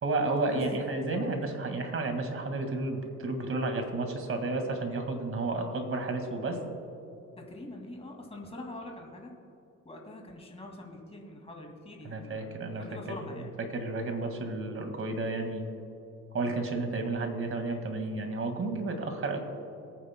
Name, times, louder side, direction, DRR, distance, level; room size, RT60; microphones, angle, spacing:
voice 1, 0.0-6.6 12.0-12.9 13.2-13.5 13.7-15.7 16.3-19.4, right 2 dB, 45° right, 5 dB, 1.9 m, -32 dB
voice 2, 7.4-9.3 9.8-13.5, left 2 dB, 20° left, 1 dB, 2.3 m, -44 dB
24.0 x 9.4 x 2.2 m, 2.9 s
cardioid pair, 90°, 30 cm